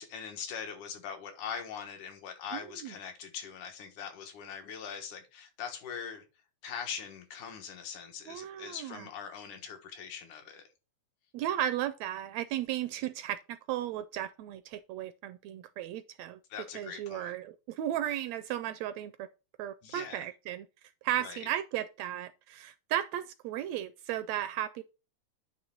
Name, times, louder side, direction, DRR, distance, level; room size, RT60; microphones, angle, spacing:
voice 1, 0.0-6.2 6.6-10.7 16.5-17.4 19.8-20.3 21.2-21.4, left 7 dB, 85° left, 2.8 m, -42 dB
voice 2, 2.5-2.9 8.3-9.1 11.3-13.4 13.7-19.3 19.6-20.7 21.0-24.8, right 12 dB, 80° right, 1.6 m, -35 dB
9.6 x 3.3 x 5.9 m
omnidirectional pair, 3.4 m